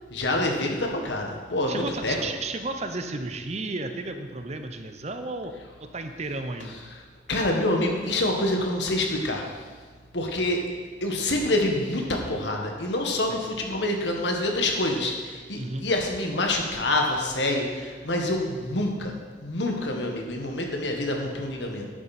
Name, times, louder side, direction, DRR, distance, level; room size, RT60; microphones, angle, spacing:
voice 1, 0.1-2.2 7.3-9.5 10.1-10.7 11.0-19.1 19.4-21.9, left 1 dB, 80° left, 2 dB, 1.6 m, -26 dB
voice 2, 1.7-5.5 5.9-6.8 13.3-13.4 15.6-15.9, right 2 dB, 40° right, 7 dB, 0.7 m, -33 dB
10.5 x 9.1 x 4.3 m, 1.5 s
head